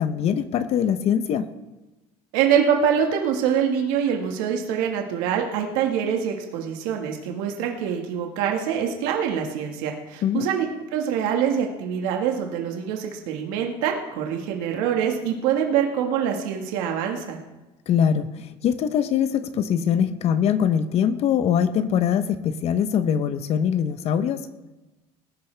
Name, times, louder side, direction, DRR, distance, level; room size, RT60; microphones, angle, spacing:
voice 1, 0.0-1.5 10.2-10.5 17.9-24.5, left 8 dB, 50° left, 12 dB, 0.8 m, -22 dB
voice 2, 2.3-10.7 10.9-17.4, right 8 dB, 80° right, 2 dB, 1.7 m, -24 dB
19.5 x 11.0 x 3.4 m, 1.1 s
supercardioid pair, 100°, 13 cm